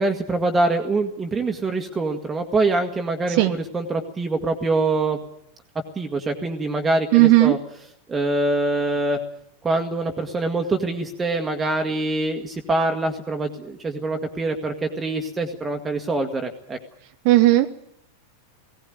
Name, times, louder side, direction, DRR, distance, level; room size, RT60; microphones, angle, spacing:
voice 1, 0.0-5.2 6.0-7.6 8.1-9.2 9.6-16.8, right 2 dB, 15° right, 3 dB, 1.8 m, -24 dB
voice 2, 7.1-7.6 17.2-17.7, right 17 dB, 45° right, 7 dB, 1.0 m, -15 dB
18.5 x 17.5 x 9.4 m, 0.72 s
figure-of-eight pair, 90°, 0 cm